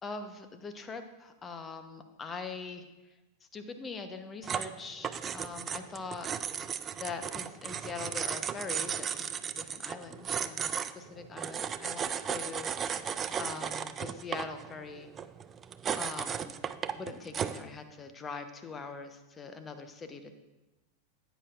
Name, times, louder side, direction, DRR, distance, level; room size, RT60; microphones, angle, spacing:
voice 1, 0.0-2.9 3.5-6.3 7.0-9.2 9.5-12.7 13.4-15.1 16.0-16.6 16.9-20.3, left 4 dB, 20° left, 8 dB, 1.0 m, -42 dB
sound 1, 4.4-17.7, right 7 dB, 25° right, 0.4 m, -35 dB
15.5 x 9.3 x 2.5 m, 1.1 s
figure-of-eight pair, 90°, 0 cm